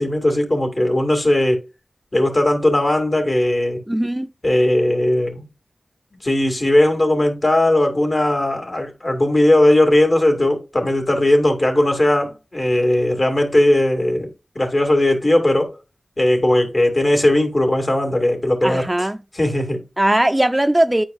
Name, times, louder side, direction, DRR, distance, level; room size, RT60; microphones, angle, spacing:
voice 1, 0.0-1.6 2.1-3.8 4.4-5.4 6.2-14.3 14.6-15.8 16.2-19.1 19.3-19.8, left 1 dB, 45° left, 2.3 m, -18 dB
voice 2, 3.9-4.3 18.6-19.2 20.0-21.0, right 1 dB, 15° right, 0.5 m, -18 dB
9.3 x 4.5 x 2.4 m
wide cardioid pair, 55°, 0 cm